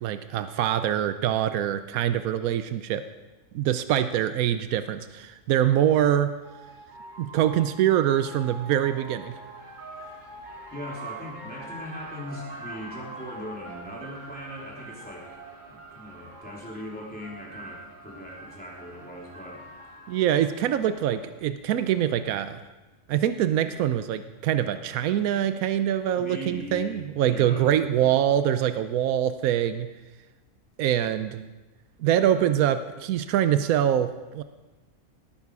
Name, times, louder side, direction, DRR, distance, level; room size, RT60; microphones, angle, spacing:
voice 1, 0.0-3.0 3.5-6.3 7.2-9.4 20.1-22.6 23.1-29.9 30.8-31.4 32.0-34.4, right 10 dB, 85° right, 10 dB, 1.1 m, -24 dB
sound 1, 6.4-21.4, right 2 dB, 35° right, 1.6 m, -44 dB
voice 2, 10.7-15.4 15.7-19.6 26.2-27.7, left 1 dB, 5° left, -4 dB, 3.4 m, -40 dB
18.0 x 9.2 x 4.8 m, 1.2 s
omnidirectional pair, 1.5 m